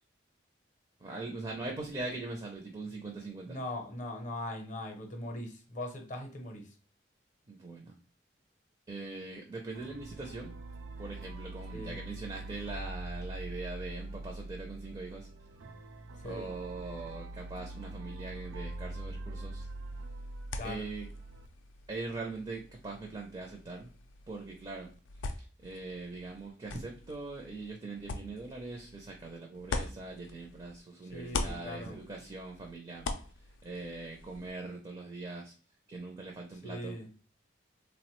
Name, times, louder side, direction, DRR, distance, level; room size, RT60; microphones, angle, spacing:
voice 1, 1.0-3.6 7.5-8.0 8.9-10.5 11.0-15.3 16.2-19.7 20.6-21.1 21.9-23.9 24.3-24.9 25.6-33.1 33.6-35.5 35.9-37.0, right 3 dB, 25° right, 1 dB, 0.4 m, -41 dB
voice 2, 3.5-6.7 11.7-12.0 16.2-16.5 20.6-20.9 31.1-32.0 36.6-37.1, left 1 dB, 40° left, 3 dB, 0.6 m, -40 dB
sound 1, 9.7-21.5, right 2 dB, 90° right, 0.4 m, -43 dB
sound 2, 19.6-30.8 31.1-34.5, left 3 dB, 85° left, 0.4 m, -43 dB
3.3 x 2.0 x 2.9 m, 0.38 s
head